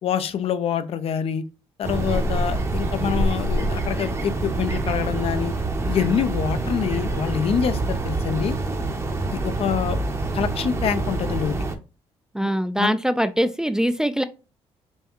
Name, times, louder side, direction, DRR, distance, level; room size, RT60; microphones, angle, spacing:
voice 1, 0.0-1.4 1.8-5.5 5.9-8.6 9.3-10.0 10.3-11.6 12.4-12.9, left 8 dB, 60° left, 0.5 m, -26 dB
sound 1, 1.8-11.7, right 2 dB, 25° right, 0.7 m, -26 dB
voice 2, 12.3-14.2, equal, 5° right, 0.3 m, -22 dB
5.4 x 2.3 x 3.0 m
cardioid pair, 100°, 11 cm